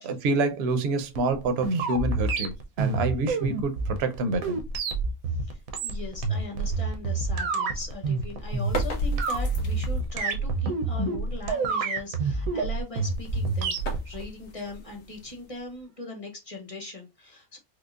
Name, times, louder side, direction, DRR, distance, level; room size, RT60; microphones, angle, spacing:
voice 1, 0.0-4.6, right 3 dB, 60° right, 0.8 m, -27 dB
sound 1, 1.1-14.0, right 3 dB, 80° right, 1.1 m, -28 dB
voice 2, 5.4-17.6, left 2 dB, 30° left, 0.9 m, -40 dB
sound 2, 8.5-10.1 12.9-15.8, left 2 dB, 55° left, 1.1 m, -36 dB
4.8 x 2.0 x 2.4 m
omnidirectional pair, 1.4 m